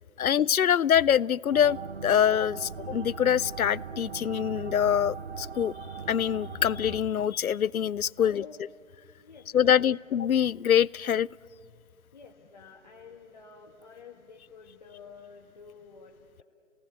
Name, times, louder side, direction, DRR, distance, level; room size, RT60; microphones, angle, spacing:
voice 1, 0.2-1.8 2.0-5.7 6.1-8.7 9.5-11.3, left 9 dB, 85° left, 26 dB, 0.6 m, -24 dB
sound 1, 1.5-7.0, right 5 dB, 50° right, 0.6 m, -39 dB
voice 2, 8.2-8.6 9.2-10.0 12.1-16.4, left 5 dB, 30° left, -1 dB, 1.7 m, -50 dB
29.0 x 18.5 x 8.0 m, 2.1 s
figure-of-eight pair, 165°, 42 cm